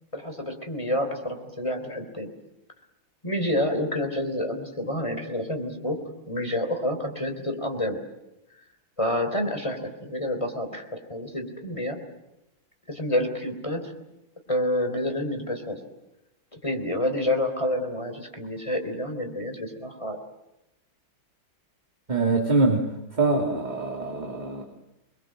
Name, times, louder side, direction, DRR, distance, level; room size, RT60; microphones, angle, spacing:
voice 1, 0.1-2.3 3.2-6.0 6.3-8.0 9.0-12.0 12.9-13.9 14.5-15.8 16.5-20.2, left 1 dB, 15° left, 6 dB, 3.5 m, -28 dB
voice 2, 22.1-24.6, right 3 dB, 20° right, 0 dB, 2.9 m, -24 dB
28.5 x 22.0 x 7.7 m, 0.92 s
omnidirectional pair, 2.3 m